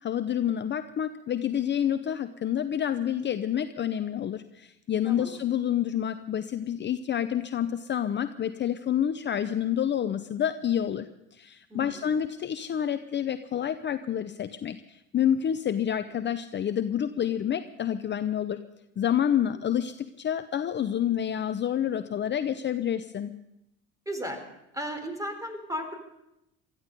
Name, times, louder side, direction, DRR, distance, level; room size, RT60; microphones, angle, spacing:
voice 1, 0.0-18.6 19.0-23.3, left 9 dB, 35° left, 10 dB, 0.7 m, -28 dB
voice 2, 11.7-12.1 24.1-24.4 24.7-26.0, equal, 10° right, 6 dB, 4.0 m, -35 dB
19.5 x 14.0 x 5.3 m, 0.86 s
supercardioid pair, 90°, 32 cm